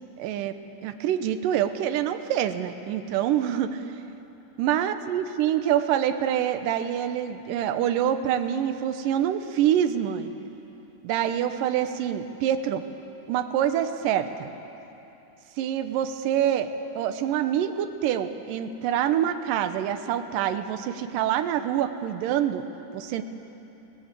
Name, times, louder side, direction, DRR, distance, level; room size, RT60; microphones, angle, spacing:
voice 1, 0.2-3.8 4.6-10.3 11.0-12.8 13.3-14.5 15.6-16.7 17.0-22.6 22.9-23.2, right 10 dB, 70° right, 9 dB, 2.3 m, -26 dB
27.5 x 18.5 x 7.6 m, 3.0 s
omnidirectional pair, 4.6 m